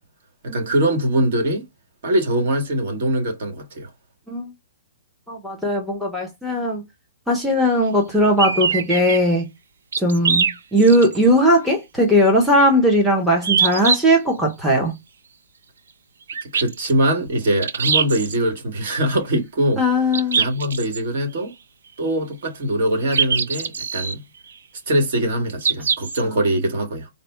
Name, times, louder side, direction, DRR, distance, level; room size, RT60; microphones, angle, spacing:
voice 1, 0.4-1.6 2.0-3.9 16.5-19.8 20.4-21.5 22.0-24.2 24.9-27.1, right 1 dB, 50° right, 1.7 m, -22 dB
voice 2, 5.3-6.8 7.3-9.5 10.0-14.9 19.8-20.4, equal, ahead, 0.7 m, -18 dB
sound 1, 8.4-9.2 9.9-11.3 11.7-11.8 13.4-14.0 16.3-16.9 17.6-18.4 20.1-21.0 23.1-24.1 25.6-26.2, right 6 dB, 80° right, 0.7 m, -22 dB
4.0 x 2.1 x 4.4 m
hypercardioid pair, 165°, 0 cm